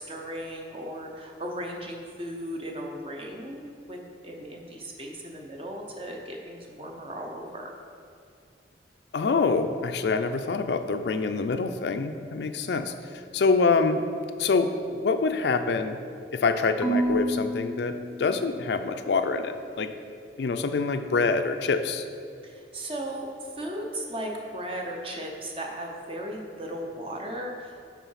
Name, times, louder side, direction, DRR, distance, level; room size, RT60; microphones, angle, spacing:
voice 1, 0.0-4.0 4.2-7.7 22.4-27.7, right 1 dB, 30° right, 1 dB, 0.8 m, -36 dB
voice 2, 9.1-12.9 13.3-14.0 14.4-16.0 16.3-19.9 20.4-22.0, left 4 dB, 70° left, 8 dB, 0.4 m, -25 dB
Marimba xylophone / Wood, 16.8-19.0, right 1 dB, 5° left, 0.6 m, -30 dB
5.7 x 4.5 x 5.6 m, 2.4 s
head